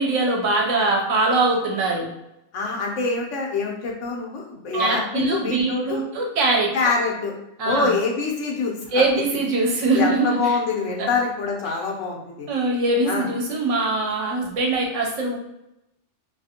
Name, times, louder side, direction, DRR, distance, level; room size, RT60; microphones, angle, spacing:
voice 1, 0.0-2.1 4.7-6.7 7.6-7.9 8.9-10.6 11.0-11.1 12.5-15.4, right 2 dB, 75° right, 0 dB, 1.0 m, -22 dB
voice 2, 2.5-6.0 6.7-7.3 7.6-8.9 9.6-12.5 13.0-13.3, left 4 dB, 80° left, 0 dB, 1.0 m, -25 dB
2.7 x 2.5 x 2.7 m, 0.89 s
omnidirectional pair, 1.3 m